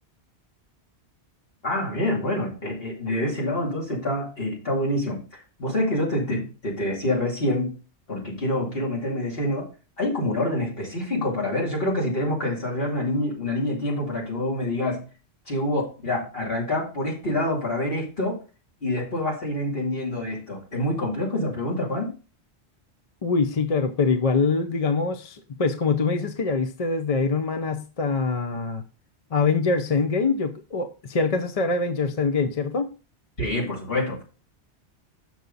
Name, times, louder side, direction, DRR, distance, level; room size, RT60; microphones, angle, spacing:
voice 1, 1.6-5.2 5.6-7.7 8.1-9.7 10.0-15.0 15.5-18.4 18.8-22.2 33.4-34.2, left 1 dB, 55° left, 3.0 m, -26 dB
voice 2, 23.2-28.8 29.3-32.9, left 4 dB, 40° left, 0.6 m, -24 dB
6.8 x 6.3 x 4.0 m
omnidirectional pair, 1.2 m